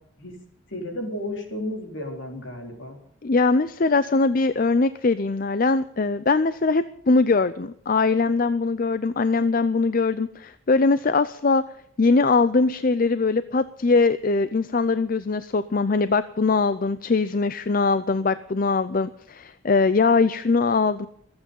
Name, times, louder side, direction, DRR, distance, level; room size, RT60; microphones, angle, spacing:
voice 1, 0.7-3.0, left 1 dB, 65° left, 2 dB, 4.2 m, -33 dB
voice 2, 3.2-11.6 12.0-21.1, left 3 dB, 45° left, 14 dB, 0.5 m, -21 dB
26.0 x 8.8 x 5.4 m, 0.66 s
head